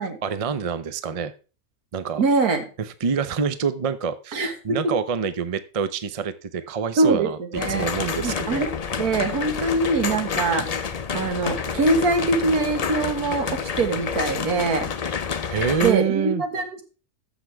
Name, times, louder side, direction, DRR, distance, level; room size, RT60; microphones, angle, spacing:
voice 1, 0.2-1.3 1.9-2.2 2.8-8.6 15.5-16.4, right 6 dB, 55° right, 13 dB, 0.3 m, -26 dB
voice 2, 2.2-2.6 4.3-4.9 7.0-7.9 8.2-8.7 9.0-10.9 11.1-14.9 15.8-16.7, right 3 dB, 75° right, 6 dB, 2.0 m, -23 dB
sound 1, 7.5-15.9, left 6 dB, 70° left, 0.3 m, -29 dB
14.0 x 6.0 x 3.4 m, 0.34 s
omnidirectional pair, 1.6 m